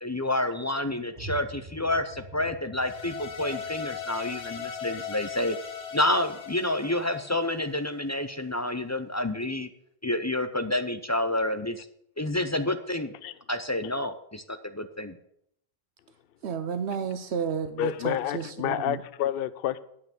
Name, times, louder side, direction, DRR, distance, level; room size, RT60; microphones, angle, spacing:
voice 1, 0.0-5.6 5.9-9.7 10.0-11.9 12.2-13.1 13.5-15.2, left 1 dB, 30° left, 0.3 m, -29 dB
sound 1, 1.1-6.7, right 3 dB, 35° right, 2.1 m, -47 dB
sound 2, 2.8-8.0, left 7 dB, 90° left, 1.4 m, -38 dB
voice 2, 16.4-19.0, right 7 dB, 75° right, 1.0 m, -32 dB
voice 3, 17.8-19.8, left 11 dB, 65° left, 0.7 m, -29 dB
9.0 x 5.7 x 7.7 m
omnidirectional pair, 1.1 m